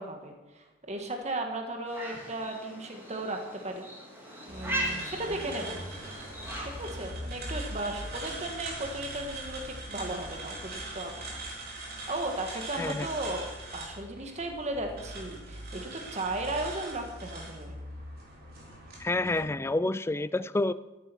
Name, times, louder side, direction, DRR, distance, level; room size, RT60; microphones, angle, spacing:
voice 1, 0.0-3.9 4.5-5.8 6.6-11.4 12.1-13.4 13.7-17.7, right 2 dB, 35° right, 3 dB, 1.8 m, -36 dB
sound 1, 1.9-7.2, right 1 dB, 10° right, 3.3 m, -38 dB
sound 2, 4.5-19.4, right 1 dB, 50° right, 4.0 m, -41 dB
voice 2, 12.8-13.1 19.0-20.7, left 2 dB, 10° left, 15 dB, 0.3 m, -28 dB
13.5 x 11.0 x 5.5 m, 1.1 s
head